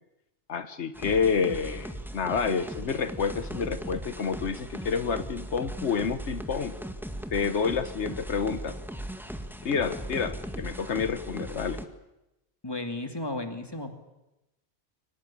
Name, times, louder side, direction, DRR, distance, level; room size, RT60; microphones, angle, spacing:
voice 1, 0.5-6.7 7.3-8.8 9.6-11.8, left 6 dB, 85° left, 11 dB, 1.4 m, -29 dB
sound 1, 0.9-11.9, right 1 dB, ahead, 1.7 m, -38 dB
voice 2, 12.6-13.9, left 2 dB, 20° left, 6 dB, 2.6 m, -34 dB
24.0 x 18.5 x 9.9 m, 0.95 s
omnidirectional pair, 1.1 m